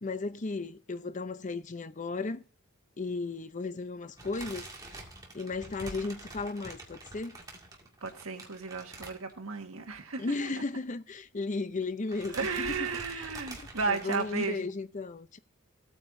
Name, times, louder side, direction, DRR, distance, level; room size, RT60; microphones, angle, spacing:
voice 1, 0.0-2.4 3.0-5.0 5.3-7.4 10.2-13.3 13.6-15.4, left 3 dB, 35° left, 0.6 m, -35 dB
sound 1, 4.2-9.7 10.0-10.2 10.5-10.6 11.5-11.8 12.1-14.5, right 2 dB, 15° right, 2.1 m, -46 dB
voice 2, 8.0-10.5 12.3-14.7, right 4 dB, 75° right, 1.5 m, -34 dB
16.0 x 8.8 x 2.6 m
head